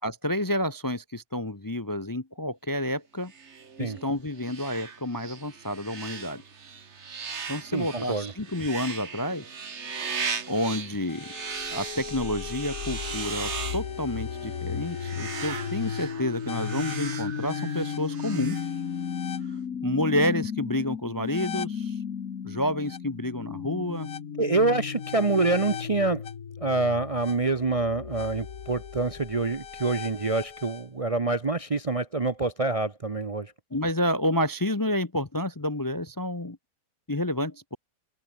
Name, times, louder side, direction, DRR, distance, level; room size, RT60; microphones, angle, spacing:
voice 1, 0.0-3.3 3.8-6.4 7.5-9.4 10.1-10.2 10.5-11.3 11.7-18.6 19.8-22.0 22.4-24.1 33.7-36.6 37.1-37.8, left 1 dB, 20° left, 0.6 m, -29 dB
sound 1, 3.3-19.2, right 5 dB, 45° right, 1.8 m, -38 dB
voice 2, 7.7-8.3 24.4-26.2 26.6-33.5, right 3 dB, 30° right, 0.7 m, -26 dB
sound 2, 11.1-30.8, left 7 dB, 65° left, 1.8 m, -35 dB
omnidirectional pair, 1.6 m